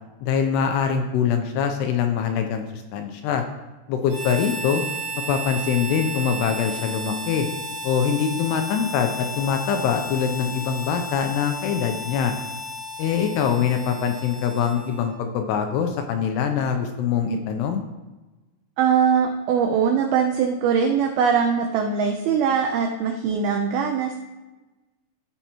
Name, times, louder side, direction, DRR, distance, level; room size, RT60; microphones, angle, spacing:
voice 1, 0.2-3.4 3.9-4.8 5.3-7.5 7.8-12.3 13.0-17.8, left 7 dB, 85° left, 5 dB, 2.5 m, -23 dB
Harmonica, 4.1-15.2, equal, 65° right, 4.5 m, -34 dB
voice 2, 18.8-24.2, right 6 dB, 85° right, 3 dB, 2.1 m, -21 dB
15.5 x 5.5 x 2.9 m, 1.2 s
omnidirectional pair, 5.1 m